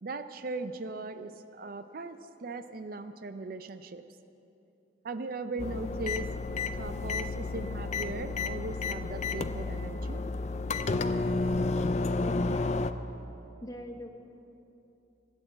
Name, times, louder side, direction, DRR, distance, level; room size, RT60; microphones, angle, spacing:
voice 1, 0.0-4.0 5.0-6.3 6.7-10.2, right 3 dB, 50° right, 10 dB, 0.5 m, -39 dB
sound 1, 5.6-12.9, left 3 dB, 35° left, 0.4 m, -31 dB
voice 2, 12.2-12.8 13.6-14.1, equal, 20° left, 5 dB, 0.9 m, -42 dB
14.5 x 8.7 x 7.8 m, 2.9 s
head